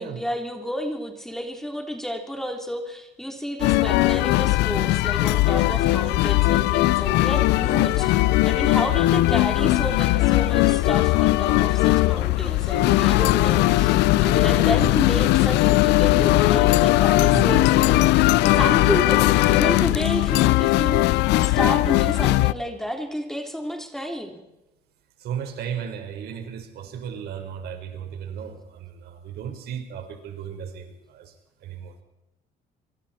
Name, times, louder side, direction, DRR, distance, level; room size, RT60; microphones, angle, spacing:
voice 1, 0.0-8.1 8.4-24.4, equal, ahead, 3 dB, 3.6 m, -31 dB
sound 1, 3.6-22.5, left 18 dB, 85° left, 0.7 m, -19 dB
voice 2, 14.4-14.7 17.3-17.7 25.2-31.3 31.6-31.9, right 8 dB, 75° right, 6 dB, 4.6 m, -35 dB
25.5 x 24.5 x 4.4 m, 0.95 s
cardioid pair, 110°, 17 cm